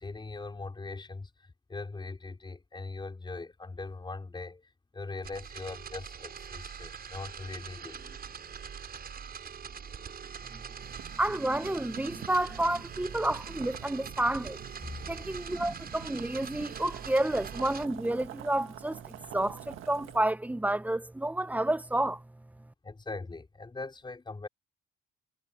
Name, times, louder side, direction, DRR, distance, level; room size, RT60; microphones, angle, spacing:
voice 1, 0.0-4.6 4.9-8.8 9.1-10.8 14.8-15.2 22.8-24.5, left 3 dB, 25° left, 4.4 m, -42 dB
sound 1, 5.2-17.9, right 7 dB, 50° right, 6.7 m, -43 dB
Boiling, 10.8-20.2, right 14 dB, 90° right, 1.6 m, -48 dB
voice 2, 11.2-14.6 15.1-19.0 19.3-22.2, right 1 dB, 10° right, 0.8 m, -30 dB
cardioid pair, 90°, 20 cm